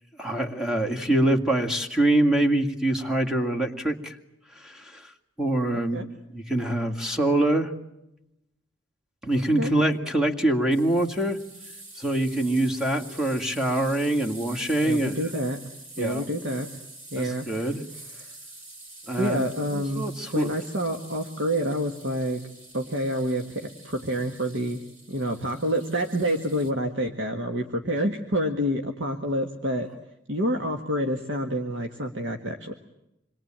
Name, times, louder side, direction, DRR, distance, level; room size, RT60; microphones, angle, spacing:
voice 1, 0.2-4.2 4.6-5.0 5.4-6.0 6.3-7.7 9.2-11.4 12.0-15.2 16.0-16.3 17.2-17.8 19.0-19.5 19.7-20.5, right 1 dB, 5° right, 2 dB, 2.1 m, -24 dB
voice 2, 5.7-6.1 9.6-9.7 14.8-15.6 16.0-16.7 17.1-17.7 19.2-20.1 20.3-22.4 22.7-24.8 25.1-29.9 30.3-32.7, equal, 65° right, 4 dB, 1.8 m, -28 dB
sound 1, 10.7-26.7, right 2 dB, 40° right, 5.3 m, -46 dB
27.0 x 21.5 x 8.9 m, 0.86 s
head